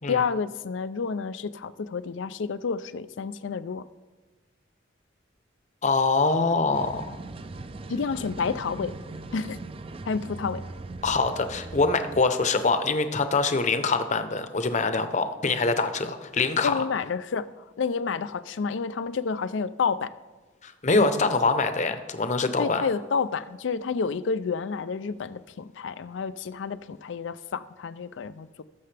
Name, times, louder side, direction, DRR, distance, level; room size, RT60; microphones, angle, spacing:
voice 1, 0.1-3.8 7.9-8.9 9.3-9.6 10.0-10.6 16.6-20.1 22.4-28.6, left 5 dB, 90° left, 15 dB, 0.4 m, -30 dB
voice 2, 5.8-7.2 11.0-16.8 20.6-22.9, left 3 dB, 40° left, 9 dB, 0.8 m, -24 dB
sound 1, 6.7-12.2, right 3 dB, 30° right, 0.4 m, -39 dB
19.5 x 6.7 x 3.4 m, 1.3 s
head